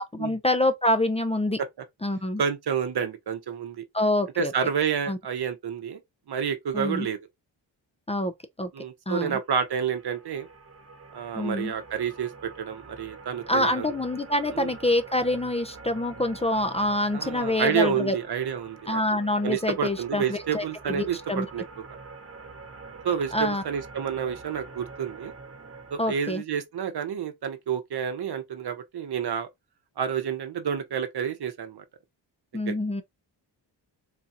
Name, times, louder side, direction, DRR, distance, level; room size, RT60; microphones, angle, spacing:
voice 1, 0.0-1.6 2.0-2.4 3.9-4.5 5.1-5.2 6.7-7.1 8.1-8.3 8.6-8.7 9.1-9.4 11.3-11.7 13.5-18.1 18.9-21.5 23.3-23.6 26.0-26.4 32.5-33.0, left 1 dB, 15° left, 0.5 m, -26 dB
voice 2, 2.4-3.8 4.4-6.0 6.3-7.2 8.7-10.5 11.1-13.9 14.5-14.8 17.1-19.0 19.4-21.8 23.0-25.3 25.9-29.5 30.0-31.8 32.7-32.8, right 7 dB, 60° right, 0.9 m, -29 dB
sound 1, 9.6-26.3, right 4 dB, 30° right, 0.9 m, -45 dB
4.1 x 2.3 x 2.7 m
cardioid pair, 55°, 44 cm